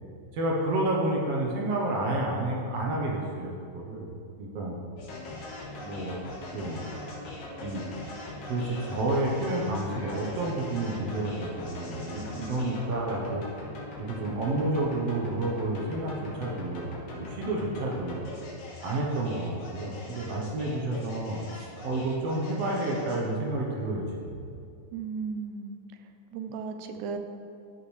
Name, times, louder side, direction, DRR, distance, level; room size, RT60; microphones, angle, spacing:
voice 1, 0.3-4.1 4.4-4.8 5.8-6.2 6.5-6.8 7.6-7.9 8.5-13.5 14.0-18.3 18.8-24.4, right 2 dB, 65° right, -2 dB, 1.8 m, -30 dB
sound 1, 5.0-23.3, left 2 dB, 75° left, 2.8 m, -41 dB
voice 2, 24.9-27.2, right 5 dB, 85° right, 6 dB, 2.1 m, -36 dB
13.0 x 5.6 x 3.2 m, 2.4 s
omnidirectional pair, 3.4 m